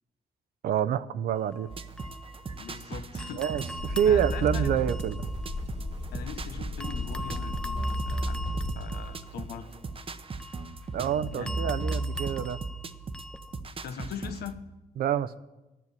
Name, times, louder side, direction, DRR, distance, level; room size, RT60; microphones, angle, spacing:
voice 1, 0.6-1.7 3.3-5.2 10.9-12.6 15.0-15.4, right 9 dB, 70° right, 15 dB, 0.6 m, -27 dB
sound 1, 1.3-2.8 3.2-6.4 6.8-13.6, left 1 dB, 5° left, 0.7 m, -43 dB
sound 2, 1.7-14.5, right 3 dB, 35° right, 0.8 m, -36 dB
voice 2, 2.6-3.4 4.1-4.8 6.1-9.8 11.3-11.6 13.8-14.6, left 8 dB, 80° left, 9 dB, 1.1 m, -41 dB
sound 3, 3.8-9.2, left 3 dB, 45° left, 2.3 m, -36 dB
11.0 x 7.7 x 9.6 m, 1.0 s
cardioid pair, 85°, 16 cm